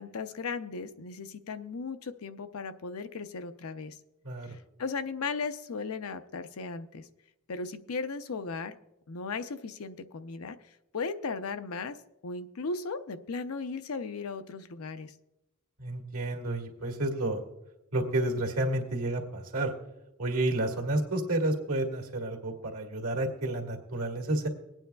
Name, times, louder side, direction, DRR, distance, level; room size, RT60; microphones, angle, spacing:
voice 1, 0.0-4.0 4.5-7.1 7.5-8.8 9.1-10.6 10.9-11.9 12.2-15.1, left 4 dB, 80° left, 10 dB, 0.6 m, -36 dB
voice 2, 15.8-17.4 17.9-19.7 20.2-24.5, right 1 dB, 90° right, 0 dB, 1.8 m, -30 dB
23.5 x 9.0 x 2.3 m, 0.93 s
head